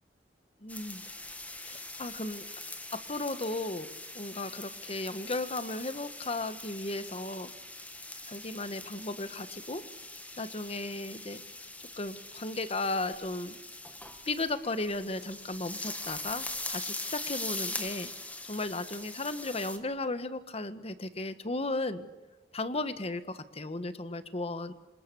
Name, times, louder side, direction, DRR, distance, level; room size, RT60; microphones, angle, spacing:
voice 1, 0.6-1.0 1.6-2.4 2.9-7.5 8.2-9.8 10.4-11.4 12.0-13.6 14.3-18.1 18.4-22.1 22.5-24.7, left 2 dB, 35° left, 11 dB, 1.4 m, -35 dB
sound 1, 0.7-19.8, left 2 dB, 10° left, 1.9 m, -42 dB
27.5 x 26.5 x 7.0 m, 1.1 s
head